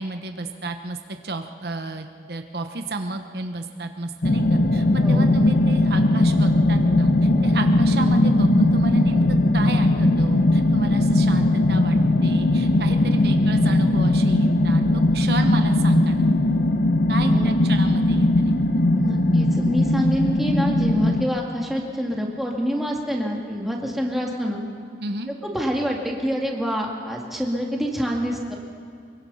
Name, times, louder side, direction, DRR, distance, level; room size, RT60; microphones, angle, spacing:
voice 1, 0.0-9.2 9.5-16.2 17.1-18.6 25.0-25.3, right 2 dB, 65° right, 6 dB, 1.1 m, -32 dB
sound 1, 4.2-21.2, left 1 dB, 60° left, 1.0 m, -19 dB
voice 2, 17.2-17.5 19.0-24.6 25.4-28.6, equal, ahead, -1 dB, 2.3 m, -26 dB
24.5 x 22.0 x 5.7 m, 2.2 s
head